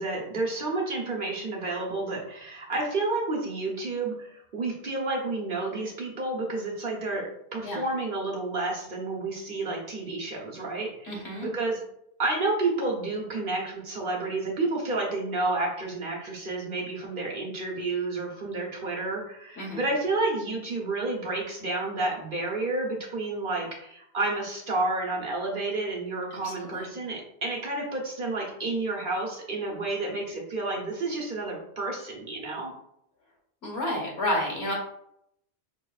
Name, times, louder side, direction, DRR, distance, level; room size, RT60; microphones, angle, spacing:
voice 1, 0.0-11.8 12.2-32.7, right 2 dB, 50° right, -2 dB, 1.1 m, -30 dB
voice 2, 11.1-11.5 19.6-19.8 26.3-26.9 33.6-34.7, left 1 dB, 70° left, -1 dB, 1.5 m, -30 dB
5.6 x 2.8 x 2.4 m, 0.75 s
omnidirectional pair, 1.1 m